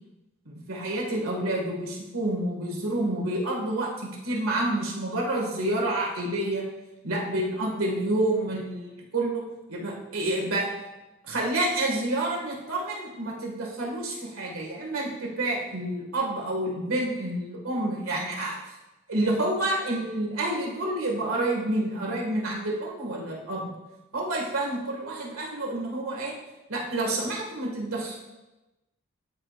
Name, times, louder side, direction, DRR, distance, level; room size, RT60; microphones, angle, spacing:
voice 1, 0.5-6.6 7.0-9.4 9.7-10.7 11.2-18.6 19.1-23.7 24.1-26.3 26.7-28.2, right 1 dB, 90° right, -2 dB, 2.0 m, -28 dB
13.5 x 4.9 x 2.5 m, 1.0 s
head